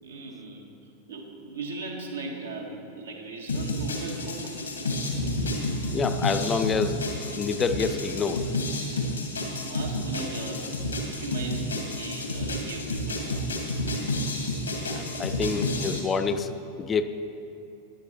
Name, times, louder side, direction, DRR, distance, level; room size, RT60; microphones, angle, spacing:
voice 1, 0.0-4.6 9.3-10.7 11.1-13.5, right 3 dB, 75° right, 0 dB, 1.5 m, -38 dB
sound 1, 3.5-16.0, left 1 dB, 75° left, 1.8 m, -30 dB
voice 2, 5.9-7.0 7.4-8.5 14.8-17.0, left 5 dB, 20° left, 9 dB, 0.5 m, -28 dB
16.5 x 10.5 x 3.1 m, 2.8 s
figure-of-eight pair, 90°, 0 cm